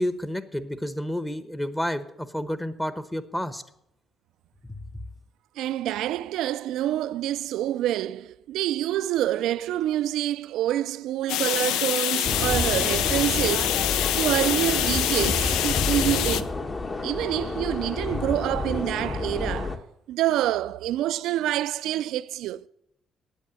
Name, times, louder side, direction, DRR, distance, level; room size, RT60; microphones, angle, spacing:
voice 1, 0.0-3.6 4.8-4.9, left 1 dB, 10° left, 1.0 m, -30 dB
voice 2, 5.6-13.9 14.2-16.5 17.0-19.8 20.1-22.6, right 13 dB, 80° right, 0.3 m, -27 dB
sound 1, 11.3-16.4, left 11 dB, 85° left, 0.5 m, -25 dB
sound 2, 12.2-19.8, left 3 dB, 35° left, 1.3 m, -29 dB
8.9 x 8.4 x 8.7 m
supercardioid pair, 70°, 0 cm